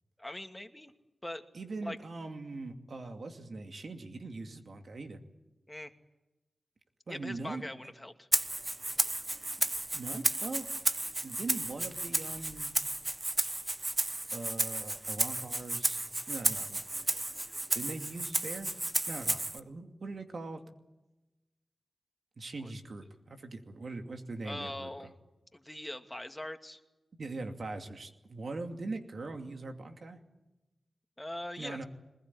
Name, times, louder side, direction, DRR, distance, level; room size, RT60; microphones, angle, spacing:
voice 1, 0.2-0.9 1.2-1.4 1.8-2.0 5.7-5.9 7.1-8.3 22.6-22.7 24.4-25.1 25.5-26.8 31.2-31.8, left 1 dB, 15° left, 6 dB, 2.4 m, -41 dB
voice 2, 1.5-5.2 7.1-7.6 9.9-10.7 11.2-12.8 14.3-16.0 16.3-16.8 17.7-18.7 19.1-20.6 22.4-24.9 27.2-30.2 31.6-31.8, right 3 dB, 70° right, 5 dB, 2.6 m, -41 dB
Rattle (instrument), 8.3-19.6, right 2 dB, 30° right, 1.3 m, -33 dB
23.0 x 20.5 x 9.9 m, 1.0 s
cardioid pair, 40°, 0 cm